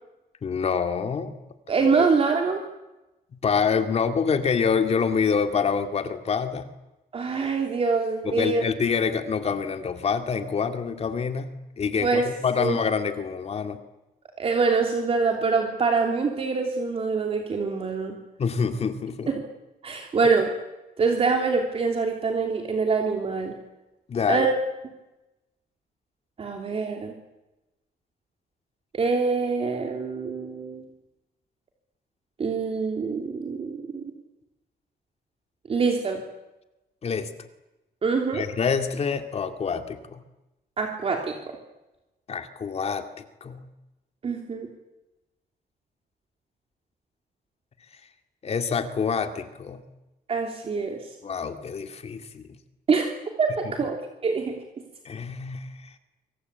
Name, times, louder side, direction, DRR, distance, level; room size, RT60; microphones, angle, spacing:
voice 1, 0.4-1.3 3.3-6.7 8.2-11.5 11.8-13.8 18.4-19.3 24.1-24.5 37.0-37.3 38.3-40.2 42.3-43.7 48.4-49.9 51.2-52.6 53.6-53.7 55.0-55.9, left 6 dB, 40° left, 7 dB, 2.4 m, -26 dB
voice 2, 1.7-2.6 7.1-8.6 12.0-12.3 12.6-12.8 14.4-18.2 19.3-19.4 19.8-20.5 21.0-23.5 24.3-24.5 26.4-27.1 28.9-30.8 32.4-34.0 35.7-36.2 38.0-38.4 40.8-41.3 44.2-44.7 50.3-51.0 52.9-53.1 53.4-54.6, right 4 dB, 35° right, 2 dB, 3.2 m, -25 dB
26.5 x 25.5 x 8.3 m, 0.99 s
wide cardioid pair, 175°, 17 cm